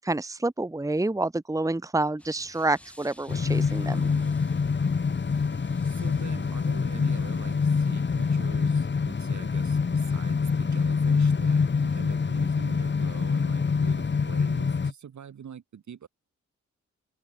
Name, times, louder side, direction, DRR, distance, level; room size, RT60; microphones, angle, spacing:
voice 1, 0.1-4.0, right 2 dB, 10° right, 1.2 m, -28 dB
sound 1, 2.2-8.4, equal, 5° left, 7.5 m, -54 dB
sound 2, 3.3-14.9, left 5 dB, 40° left, 1.5 m, -25 dB
voice 2, 3.9-4.3 5.8-16.1, right 8 dB, 75° right, 7.5 m, -44 dB
open air
cardioid pair, 65°, 29 cm